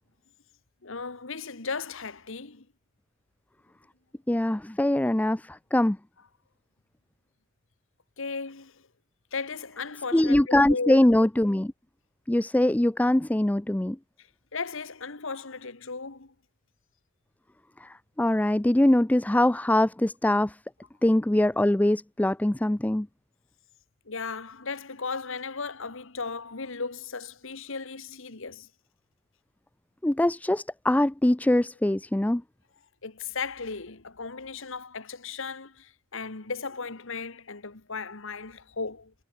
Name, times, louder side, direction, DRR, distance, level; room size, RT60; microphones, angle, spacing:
voice 1, 0.8-2.6 8.2-8.8 9.3-11.0 14.2-16.3 24.1-28.7 33.0-39.1, left 4 dB, 65° left, 1.6 m, -36 dB
voice 2, 4.3-6.0 10.1-11.7 12.3-14.0 17.8-20.6 21.0-23.1 30.0-32.4, left 1 dB, 5° left, 0.4 m, -23 dB
head